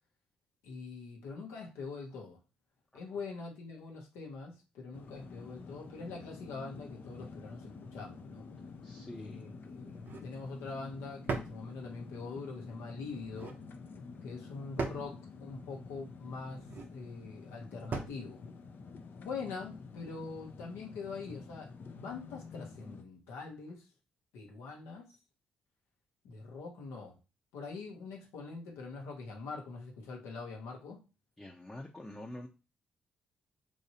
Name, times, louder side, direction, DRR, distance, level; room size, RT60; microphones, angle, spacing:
voice 1, 0.6-2.4 2.9-8.5 9.2-13.6 14.2-16.6 16.9-18.4 19.2-21.7 22.0-23.9 24.3-25.2 26.2-27.2 27.5-31.0, left 4 dB, 75° left, 1 dB, 0.9 m, -43 dB
sound 1, 4.9-23.0, left 4 dB, 55° left, 0.5 m, -49 dB
voice 2, 8.8-9.4 31.4-32.5, left 1 dB, 15° left, 0 dB, 0.7 m, -46 dB
sound 2, 9.9-10.3 11.3-11.6 13.2-13.6 14.8-15.1 16.5-16.9 17.9-18.2, right 4 dB, 55° right, 0.7 m, -38 dB
3.1 x 2.7 x 2.8 m, 0.31 s
hypercardioid pair, 45°, 4 cm